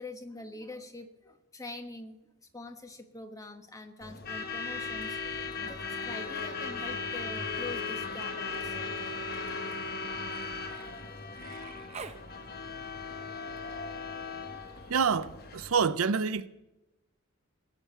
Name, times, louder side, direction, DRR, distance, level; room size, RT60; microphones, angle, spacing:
voice 1, 0.0-9.2, left 2 dB, 15° left, 1.1 m, -45 dB
Truck / Alarm, 4.0-16.0, left 4 dB, 45° left, 1.3 m, -37 dB
Human voice, 5.5-6.3 6.6-12.2 13.8-13.9, right 5 dB, 30° right, 0.8 m, -51 dB
voice 2, 14.9-16.5, right 6 dB, 75° right, 0.6 m, -27 dB
19.0 x 7.4 x 8.1 m
head